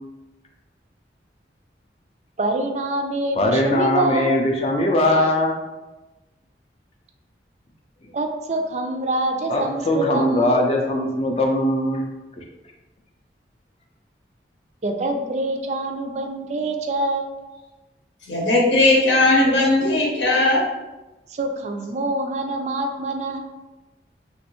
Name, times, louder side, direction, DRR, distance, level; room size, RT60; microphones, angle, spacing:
voice 1, 2.4-4.4 8.1-10.6 14.8-17.3 21.3-23.4, right 2 dB, 40° right, 4 dB, 0.3 m, -25 dB
voice 2, 3.4-5.6 9.5-12.1, left 1 dB, 35° left, 1 dB, 0.4 m, -20 dB
voice 3, 18.3-20.6, left 2 dB, 90° left, -2 dB, 0.8 m, -17 dB
3.1 x 2.9 x 3.0 m, 1.1 s
head